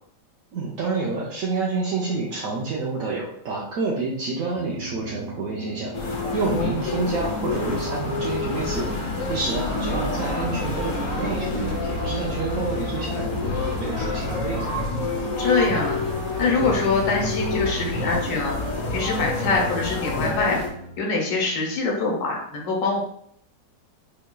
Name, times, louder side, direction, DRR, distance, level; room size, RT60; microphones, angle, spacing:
voice 1, 0.5-14.7, right 3 dB, 65° right, -4 dB, 0.9 m, -29 dB
sound 1, 4.6-21.0, right 3 dB, 85° right, 1.8 m, -42 dB
sound 2, 5.9-20.7, left 3 dB, 60° left, 1.1 m, -28 dB
voice 2, 6.5-7.0 15.4-18.5 18.9-20.6 21.0-23.0, left 3 dB, 90° left, -1 dB, 1.5 m, -24 dB
4.6 x 3.0 x 2.2 m, 0.67 s
omnidirectional pair, 1.9 m